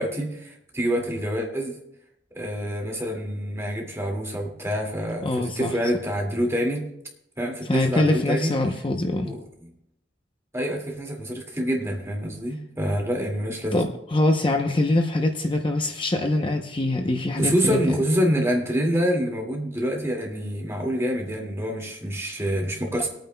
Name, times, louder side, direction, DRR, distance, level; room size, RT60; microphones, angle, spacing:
voice 1, 0.0-1.8 2.3-6.9 7.4-8.5 9.2-9.4 10.5-13.8 17.3-23.1, equal, 15° right, 0 dB, 2.2 m, -26 dB
voice 2, 5.2-5.7 7.7-9.3 13.7-18.0, left 2 dB, 30° left, 4 dB, 0.7 m, -23 dB
24.0 x 9.1 x 2.2 m, 0.81 s
head